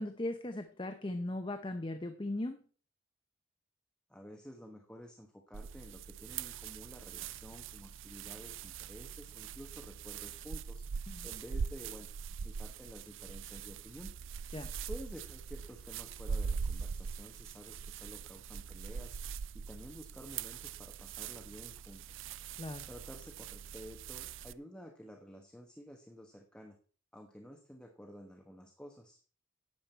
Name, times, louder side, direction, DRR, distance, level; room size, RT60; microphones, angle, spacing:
voice 1, 0.0-2.6 11.1-11.3 14.5-14.7 22.6-22.9, left 1 dB, 25° left, 7 dB, 0.6 m, -38 dB
voice 2, 4.1-12.1 12.4-14.1 14.9-19.2 19.5-22.3 22.9-26.8 27.1-29.2, equal, 5° left, 2 dB, 1.1 m, -51 dB
sound 1, 5.5-24.5, right 6 dB, 65° right, 0.4 m, -42 dB
11.5 x 8.6 x 4.4 m, 0.42 s
head